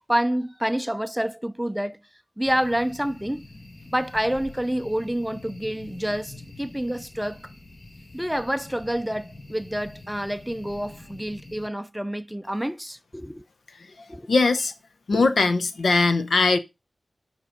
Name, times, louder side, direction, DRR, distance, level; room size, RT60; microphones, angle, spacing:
voice 1, 0.1-2.0 2.4-3.4 3.9-7.5 8.1-13.5 14.1-14.3 15.1-15.3, equal, 5° right, 0.5 m, -28 dB
sound 1, 2.4-11.7, left 2 dB, 35° left, 1.4 m, -45 dB
voice 2, 13.8-14.7 15.1-16.6, left 3 dB, 90° left, 1.0 m, -21 dB
7.2 x 5.9 x 5.1 m
wide cardioid pair, 90°, 0 cm